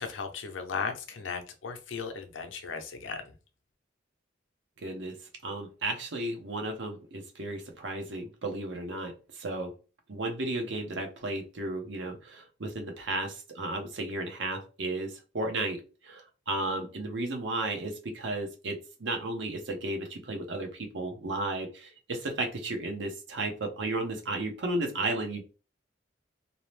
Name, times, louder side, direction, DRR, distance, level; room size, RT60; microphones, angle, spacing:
voice 1, 0.0-3.2, left 5 dB, 90° left, 5 dB, 0.5 m, -36 dB
voice 2, 4.8-5.1 5.4-9.7 10.1-25.4, right 2 dB, 75° right, 4 dB, 0.7 m, -34 dB
2.7 x 2.0 x 3.1 m, 0.33 s
head